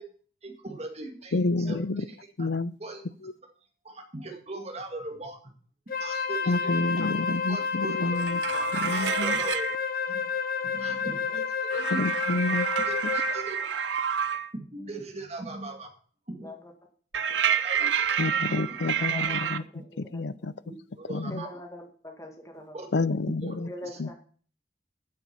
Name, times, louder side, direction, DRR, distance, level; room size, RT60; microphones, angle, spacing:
voice 1, 0.4-2.5 2.8-3.0 3.8-5.4 6.0-7.1 7.5-8.2 8.7-9.7 10.1-10.2 10.6-11.4 11.7-12.0 12.8-13.6 14.5-15.9 16.3-16.5 17.5-18.1 18.5-18.6 20.7-21.5 22.7-22.9 23.2-23.6, right 2 dB, 35° right, 2 dB, 2.0 m, -39 dB
voice 2, 1.3-2.0 2.4-2.7 3.2-3.3 6.5-8.4 8.7-9.4 11.9-12.7 18.2-19.6 20.1-20.5 21.1-21.4 22.9-23.7 24.0-24.1, left 3 dB, 70° left, 17 dB, 0.6 m, -29 dB
Wind instrument woodwind instrument, 5.9-13.5, left 5 dB, 50° left, 1.0 m, -30 dB
sound 1, 8.2-9.8 11.7-14.5 17.1-19.6, right 8 dB, 85° right, 0.7 m, -28 dB
voice 3, 8.5-9.1 13.0-13.1 16.4-16.7 17.1-17.4 18.9-20.5 21.3-22.9 23.6-24.1, left 1 dB, 15° left, 3 dB, 1.8 m, -44 dB
9.4 x 7.6 x 6.9 m, 0.43 s
head